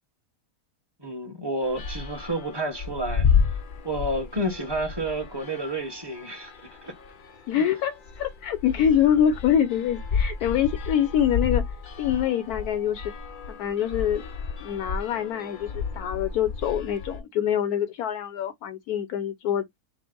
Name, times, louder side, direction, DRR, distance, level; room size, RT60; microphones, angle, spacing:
voice 1, 1.0-3.3 3.8-6.5 6.8-6.9, right 1 dB, 20° right, 0.9 m, -30 dB
sound 1, 1.6-17.2, left 6 dB, 50° left, 0.6 m, -31 dB
voice 2, 7.5-13.1 13.6-14.3 14.6-19.8, left 9 dB, 75° left, 1.2 m, -25 dB
6.0 x 2.0 x 3.8 m
omnidirectional pair, 1.6 m